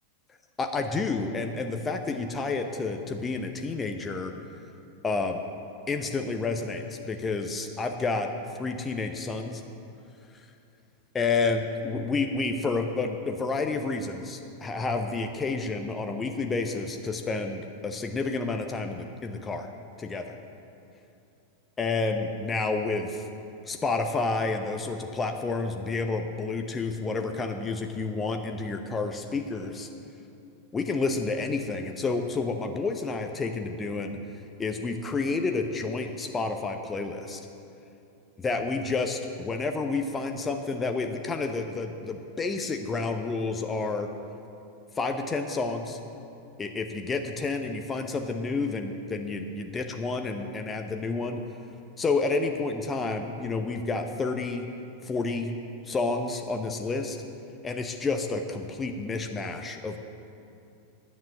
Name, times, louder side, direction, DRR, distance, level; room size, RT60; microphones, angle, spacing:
voice 1, 0.6-4.3 5.0-5.4 5.9-8.3 8.5-9.6 11.1-19.7 20.0-20.2 21.8-23.2 23.7-29.9 30.7-34.2 34.6-37.4 38.4-44.1 45.0-46.0 46.6-51.4 52.0-54.7 55.0-55.5 55.8-57.2 57.6-60.0, left 3 dB, 15° left, 5 dB, 0.8 m, -30 dB
10.5 x 9.2 x 7.5 m, 2.7 s
figure-of-eight pair, 90°, 0 cm